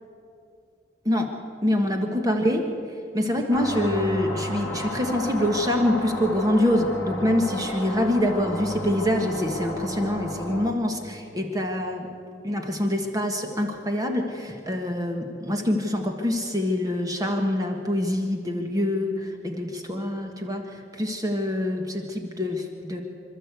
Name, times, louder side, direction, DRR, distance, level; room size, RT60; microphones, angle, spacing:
voice 1, 1.6-2.6 3.1-12.1 12.4-23.0, left 1 dB, 20° right, 3 dB, 1.5 m, -25 dB
sound 1, 3.5-10.7, left 1 dB, 15° left, 3.2 m, -32 dB
26.5 x 12.5 x 8.2 m, 2.5 s
head